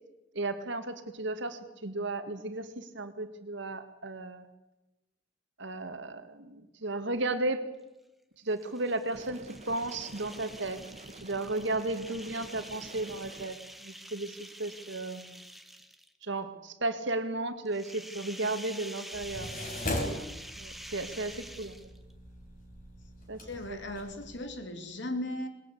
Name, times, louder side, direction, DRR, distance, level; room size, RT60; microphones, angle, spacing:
voice 1, 0.3-4.5 5.6-7.6 8.4-9.4 9.7-10.8 11.2-15.5 16.2-19.5 19.9-20.3 20.6-21.8 23.3-23.4 23.7-23.8, right 2 dB, 65° right, 1.8 m, -34 dB
sound 1, 8.5-16.2 17.7-22.1, right 1 dB, ahead, 1.3 m, -47 dB
sound 2, 9.1-13.5, right 2 dB, 35° right, 1.5 m, -49 dB
sound 3, 19.1-24.4, left 1 dB, 45° left, 5.0 m, -39 dB
voice 2, 23.4-25.5, left 1 dB, 65° left, 2.8 m, -37 dB
20.5 x 20.5 x 8.4 m
head